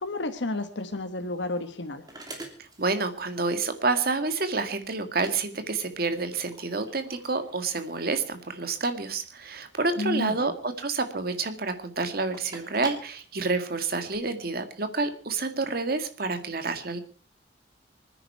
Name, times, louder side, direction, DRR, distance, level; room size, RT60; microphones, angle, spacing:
voice 1, 0.0-2.0 10.0-10.5, left 2 dB, 85° left, 7 dB, 1.3 m, -31 dB
sound 1, 1.0-14.2, right 2 dB, 20° right, 2.9 m, -48 dB
voice 2, 2.6-17.0, right 3 dB, 55° right, 8 dB, 1.9 m, -29 dB
25.5 x 10.0 x 4.6 m, 0.37 s
head